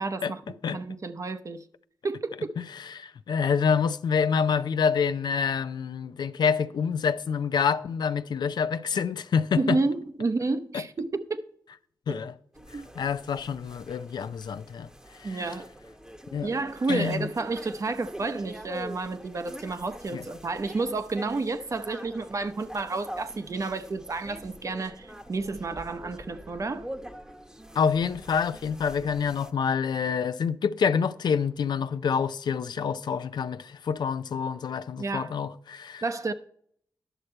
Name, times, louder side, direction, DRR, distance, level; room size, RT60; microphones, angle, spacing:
voice 1, 0.0-1.6 2.0-2.5 9.5-11.4 12.1-12.2 12.7-12.9 15.2-15.7 16.4-26.9 35.0-35.3 36.0-36.3, right 3 dB, 45° right, 0.7 m, -30 dB
voice 2, 2.6-9.8 10.7-10.8 12.1-12.3 12.7-14.9 15.2-15.6 16.3-16.5 16.9-17.3 20.1-20.2 27.8-36.0, left 6 dB, 75° left, 0.4 m, -27 dB
sound 1, 12.5-29.5, right 1 dB, 10° right, 1.0 m, -44 dB
11.0 x 6.5 x 4.4 m
cardioid pair, 75°, 7 cm